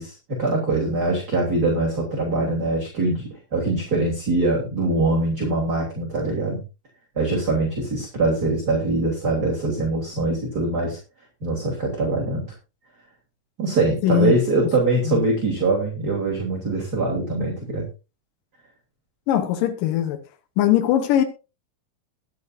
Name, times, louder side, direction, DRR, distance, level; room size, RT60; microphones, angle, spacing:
voice 1, 0.0-6.6 7.1-11.0 11.4-12.5 13.6-17.9, right 2 dB, 30° right, 3.4 m, -23 dB
voice 2, 14.0-14.3 15.1-15.2 19.3-20.2 20.6-21.2, left 11 dB, 85° left, 2.8 m, -20 dB
22.0 x 8.0 x 2.7 m
omnidirectional pair, 3.8 m